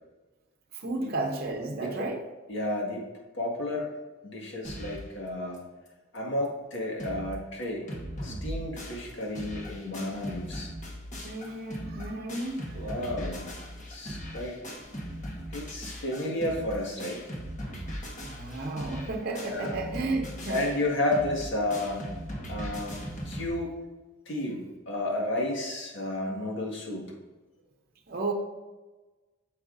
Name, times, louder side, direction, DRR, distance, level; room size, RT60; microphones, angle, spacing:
voice 1, 0.7-2.2 11.2-12.9 18.2-20.7 28.1-28.3, right 2 dB, 50° right, 2 dB, 0.8 m, -33 dB
voice 2, 2.5-3.0 3.3-3.9 4.2-5.6 6.1-7.8 8.2-10.7 12.7-13.5 13.9-14.6 15.5-17.2 19.4-19.7 20.5-22.0 22.5-23.7 24.2-24.6 24.9-27.1, left 1 dB, 60° left, -1 dB, 1.8 m, -32 dB
sound 1, 4.6-5.1 5.6-5.7 5.9-6.0 6.4-6.5 6.7-7.3 7.6-23.5, equal, 40° left, 1.3 m, -39 dB
8.8 x 6.8 x 2.6 m, 1.2 s
head